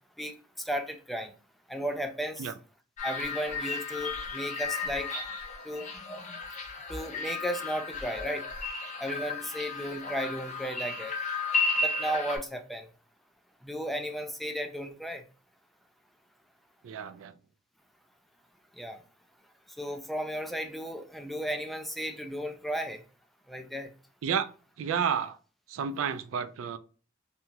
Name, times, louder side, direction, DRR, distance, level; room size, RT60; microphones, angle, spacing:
voice 1, 0.2-1.3 1.7-2.5 3.0-5.1 5.6-5.9 6.9-8.4 9.0-11.1 11.8-12.9 13.6-15.2 18.8-19.0 19.8-23.0 23.5-23.9, equal, ahead, 0.3 m, -34 dB
sound 1, 3.0-12.4, left 3 dB, 40° left, 0.6 m, -34 dB
voice 2, 16.8-17.3 24.2-24.5 24.8-25.4 25.7-26.8, right 7 dB, 80° right, 0.3 m, -31 dB
2.8 x 2.3 x 2.7 m
head